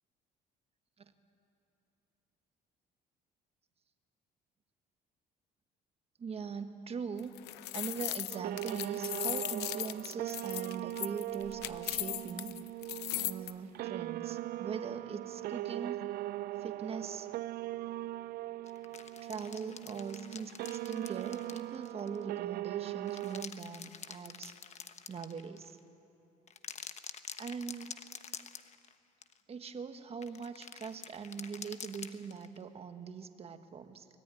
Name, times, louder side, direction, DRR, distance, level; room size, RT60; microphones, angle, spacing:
voice 1, 6.2-7.3 7.7-12.5 13.1-16.0 16.6-17.3 19.2-24.5 25.1-25.8 27.4-28.0 29.5-34.1, right 6 dB, 35° right, 8 dB, 1.5 m, -41 dB
sound 1, 7.2-13.5, left 17 dB, 85° left, 0.7 m, -38 dB
sound 2, 8.3-23.5, right 16 dB, 65° right, 0.5 m, -40 dB
sound 3, 18.7-22.2 22.9-25.8 26.5-28.9 29.2-29.4 30.2-32.6, left 7 dB, 40° left, 1.1 m, -47 dB
24.0 x 17.5 x 9.9 m, 2.9 s
cardioid pair, 110°, 17 cm